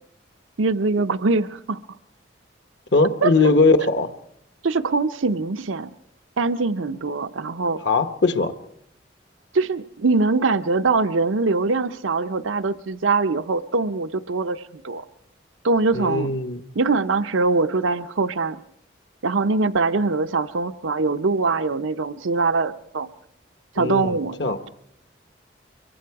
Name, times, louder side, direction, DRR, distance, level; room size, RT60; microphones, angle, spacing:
voice 1, 0.6-1.8 3.2-3.3 3.8-3.9 4.6-5.9 6.4-7.8 9.5-15.0 15.6-16.3 16.8-18.6 19.2-23.1 23.7-24.4, right 3 dB, 90° right, 0.7 m, -22 dB
voice 2, 2.9-4.1 7.8-8.5 15.9-16.6 23.8-24.6, left 3 dB, 65° left, 1.1 m, -20 dB
24.5 x 23.0 x 4.8 m
head